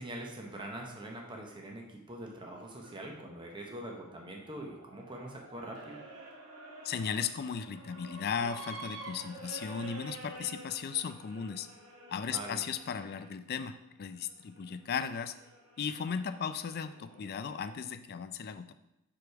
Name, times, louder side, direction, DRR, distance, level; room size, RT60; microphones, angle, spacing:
voice 1, 0.0-6.0 12.3-12.6, right 1 dB, 20° right, 0 dB, 0.9 m, -43 dB
sound 1, 2.5-13.3 14.0-17.7, right 2 dB, 90° right, 1.6 m, -50 dB
voice 2, 6.8-11.7 12.1-15.4 15.8-18.7, left 6 dB, 45° left, 11 dB, 0.4 m, -36 dB
5.0 x 4.8 x 4.6 m, 0.90 s
head